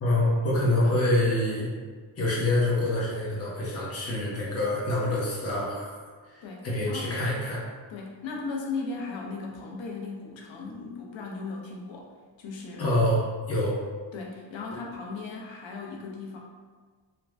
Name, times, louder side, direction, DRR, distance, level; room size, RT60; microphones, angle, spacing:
voice 1, 0.0-1.7 2.2-6.0 6.6-7.6 12.8-13.2 13.5-13.8, left 1 dB, 30° left, -5 dB, 0.8 m, -25 dB
voice 2, 6.4-7.1 7.9-12.1 12.4-12.9 14.1-16.4, left 4 dB, 70° left, -1 dB, 0.7 m, -37 dB
3.2 x 2.2 x 2.5 m, 1.5 s
cardioid pair, 80°, 48 cm